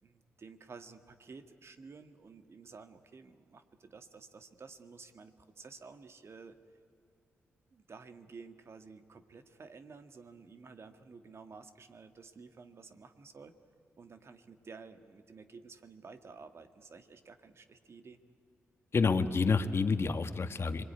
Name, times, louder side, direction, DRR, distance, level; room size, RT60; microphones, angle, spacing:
voice 1, 0.0-6.6 7.7-13.5 14.0-18.2, right 4 dB, 55° right, 8 dB, 1.8 m, -52 dB
voice 2, 18.9-20.8, left 4 dB, 50° left, 8 dB, 1.4 m, -28 dB
26.5 x 21.5 x 9.6 m, 2.5 s
supercardioid pair, 45°, 5 cm